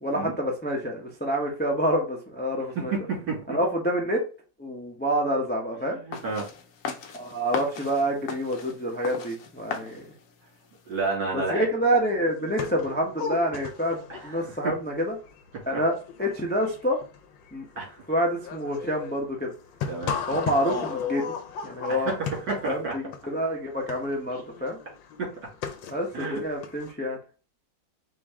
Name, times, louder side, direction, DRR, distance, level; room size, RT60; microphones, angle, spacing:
voice 1, 0.0-2.9 3.5-4.2 4.6-6.0 7.1-10.1 11.3-15.1 15.7-15.9 16.2-17.0 17.5-17.7 18.1-19.5 20.3-21.3 21.6-22.1 22.7-24.8 25.9-27.2, equal, 15° left, -1 dB, 0.3 m, -27 dB
voice 2, 2.8-3.6 5.9-6.5 10.9-11.7 14.1-14.7 15.7-15.8 17.8-18.0 19.9-20.2 21.9-22.9 25.2-25.3 26.1-26.4, right 4 dB, 65° right, -2 dB, 2.8 m, -30 dB
sound 1, 6.1-11.2, left 5 dB, 60° left, 0.9 m, -38 dB
sound 2, 11.6-11.7 11.8-26.9, left 6 dB, 90° left, 1.5 m, -37 dB
5.2 x 2.7 x 3.6 m, 0.34 s
omnidirectional pair, 2.0 m